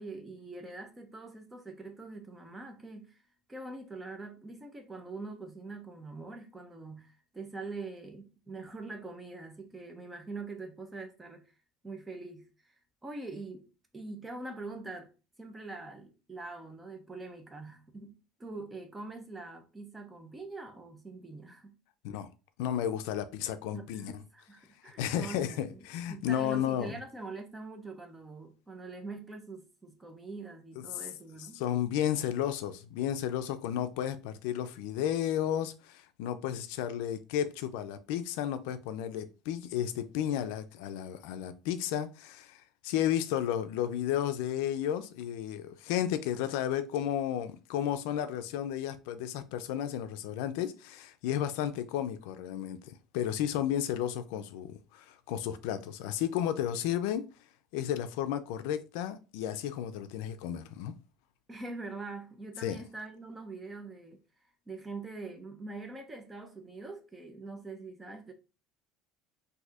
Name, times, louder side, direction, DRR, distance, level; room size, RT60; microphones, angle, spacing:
voice 1, 0.0-3.2 3.5-11.5 11.8-12.8 13.0-13.7 13.9-15.1 15.4-21.8 23.7-31.6 61.5-64.2 64.7-68.3, right 3 dB, 10° right, 0.5 m, -44 dB
voice 2, 22.6-24.1 25.0-26.9 30.9-31.0 31.5-57.2 57.7-60.9 62.6-62.8, left 10 dB, 80° left, 0.4 m, -33 dB
4.1 x 2.6 x 2.4 m
cardioid pair, 165°, 0 cm